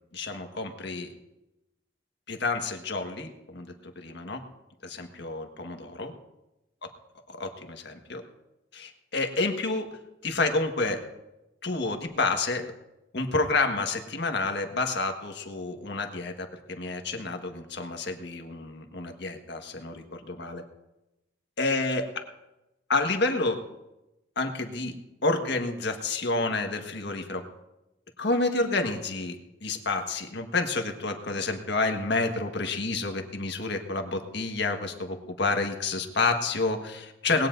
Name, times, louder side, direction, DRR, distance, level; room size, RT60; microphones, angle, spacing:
voice 1, 0.1-1.1 2.3-4.4 4.8-6.1 7.3-8.2 8.7-11.0 11.6-12.7 13.1-20.6 21.6-22.0 22.9-23.6 24.4-24.9 25.2-27.4 28.2-37.5, left 3 dB, 65° left, 4 dB, 1.6 m, -29 dB
20.0 x 17.0 x 2.7 m, 0.96 s
head